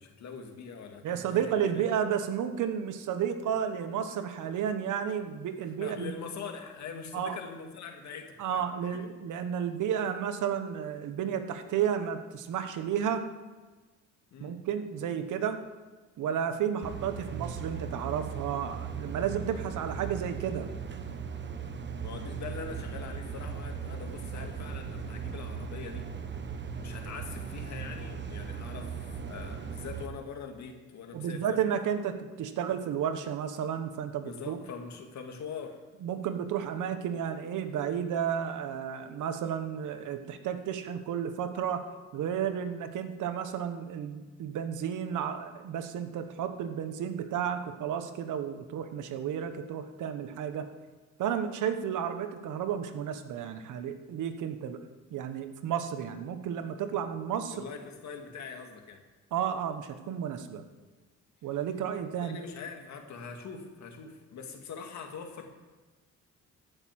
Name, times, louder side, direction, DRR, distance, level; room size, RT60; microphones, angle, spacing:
voice 1, 0.0-1.8 5.8-9.1 14.3-14.6 22.0-26.4 26.8-28.9 29.2-31.6 34.2-35.8 57.5-59.0 62.2-65.5, left 5 dB, 65° left, 4 dB, 2.1 m, -43 dB
voice 2, 1.0-6.1 7.1-7.4 8.4-13.3 14.4-15.6 16.2-20.7 31.1-34.6 36.0-41.8 42.1-50.7 51.2-54.8 55.1-57.6 59.3-60.6 61.4-62.4, right 8 dB, 80° right, 9 dB, 1.2 m, -32 dB
sound 1, 16.8-30.1, right 6 dB, 35° right, 1.3 m, -38 dB
15.0 x 6.7 x 7.5 m, 1.3 s
cardioid pair, 90°, 30 cm